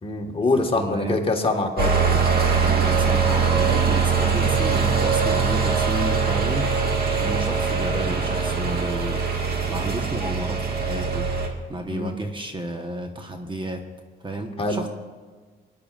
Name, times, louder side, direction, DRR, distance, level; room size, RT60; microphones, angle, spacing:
voice 1, 0.0-1.9 7.2-7.4 11.9-12.1 14.6-14.8, left 2 dB, 30° left, 2 dB, 1.6 m, -24 dB
voice 2, 0.5-1.2 2.6-6.7 7.2-9.2 9.7-11.3 11.7-13.8 14.2-15.0, right 2 dB, 25° right, 4 dB, 1.2 m, -31 dB
sound 1, 1.8-11.5, right 5 dB, 50° right, 1.9 m, -22 dB
20.5 x 10.5 x 2.5 m, 1.4 s
cardioid pair, 90°, 20 cm